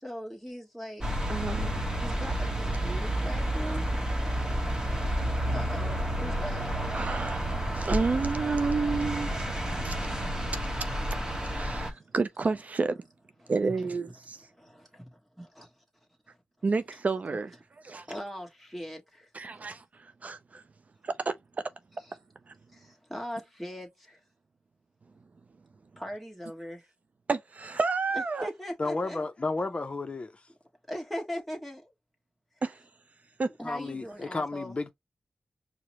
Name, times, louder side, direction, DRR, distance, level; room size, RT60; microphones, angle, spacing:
voice 1, 0.0-1.1 2.0-3.9 5.5-6.7 13.4-13.9 14.6-15.7 18.1-19.3 22.0-22.2 22.7-24.2 26.0-26.8 28.1-29.2 30.9-31.9 33.5-34.8, equal, ahead, 1.3 m, -40 dB
sound 1, 1.0-11.9, right 1 dB, 20° right, 0.9 m, -30 dB
voice 2, 1.3-1.7 3.7-3.8 6.9-9.3 9.8-10.0 11.4-13.0 13.5-14.4 16.6-17.5 17.8-18.1 19.3-20.6 21.0-21.3 22.5-22.6 27.3-28.5 32.6-32.8 33.4-33.5, right 4 dB, 50° right, 0.4 m, -30 dB
voice 3, 28.8-30.3 33.6-34.9, left 3 dB, 35° left, 0.5 m, -32 dB
4.8 x 2.0 x 2.8 m
wide cardioid pair, 90°, 3 cm